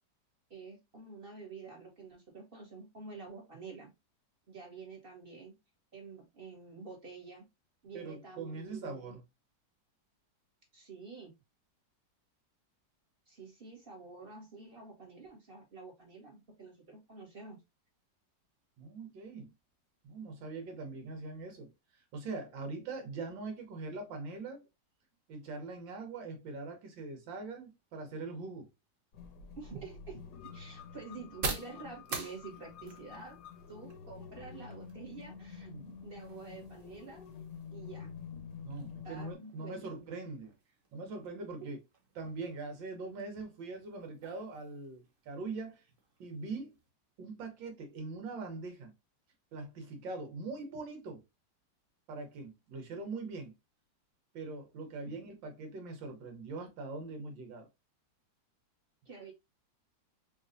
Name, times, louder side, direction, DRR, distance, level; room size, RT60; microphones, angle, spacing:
voice 1, 0.5-3.9 4.5-5.5 5.9-7.4 7.8-9.1 10.7-11.3 13.3-17.6 29.6-33.4 33.7-35.7 36.0-37.3 37.7-38.1 39.0-40.0 41.6-41.7 55.0-55.2 59.0-59.3, right 4 dB, 35° right, 1.2 m, -48 dB
voice 2, 7.9-9.2 18.8-19.5 20.0-21.7 22.1-24.6 25.3-28.7 35.7-35.9 38.6-40.5 40.9-41.8 42.2-45.8 46.2-46.8 47.2-48.9 49.5-51.2 52.1-53.5 54.3-57.7, right 3 dB, 80° right, 1.8 m, -42 dB
sound 1, 29.1-39.3, left 6 dB, 70° left, 1.2 m, -48 dB
sound 2, 29.3-46.9, right 4 dB, 55° right, 0.6 m, -48 dB
5.3 x 2.5 x 2.5 m
omnidirectional pair, 2.0 m